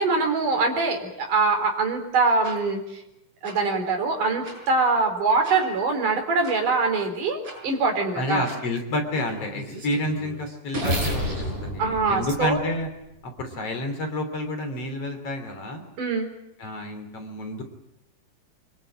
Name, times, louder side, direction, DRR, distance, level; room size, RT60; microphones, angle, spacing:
voice 1, 0.0-3.0 3.4-8.5 11.8-12.6 16.0-16.3, right 3 dB, 65° right, 3 dB, 5.7 m, -23 dB
sound 1, 2.4-2.6 3.4-3.5 4.4-4.6 5.4-5.6 6.4-6.6 7.4-7.6 8.4-8.6 9.1-13.0, equal, 40° right, 8.4 m, -31 dB
voice 2, 8.1-12.9 13.4-15.8 16.6-17.6, left 1 dB, 45° left, 5 dB, 4.2 m, -29 dB
25.5 x 22.5 x 9.0 m, 0.88 s
omnidirectional pair, 3.9 m